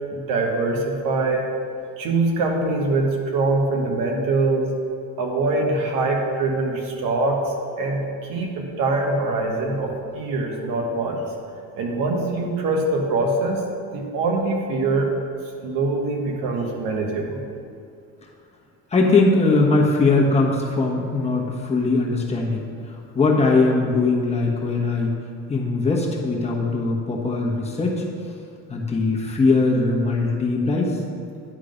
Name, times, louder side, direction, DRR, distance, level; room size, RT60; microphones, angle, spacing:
voice 1, 0.1-1.5 2.0-4.7 5.2-11.2 11.8-13.6 13.9-15.1 15.6-17.4, right 2 dB, 75° right, 1 dB, 1.3 m, -23 dB
voice 2, 18.9-25.1 25.5-28.0 28.7-31.0, left 3 dB, 20° left, -2 dB, 1.3 m, -20 dB
10.0 x 3.8 x 5.1 m, 2.5 s
cardioid pair, 110°, 34 cm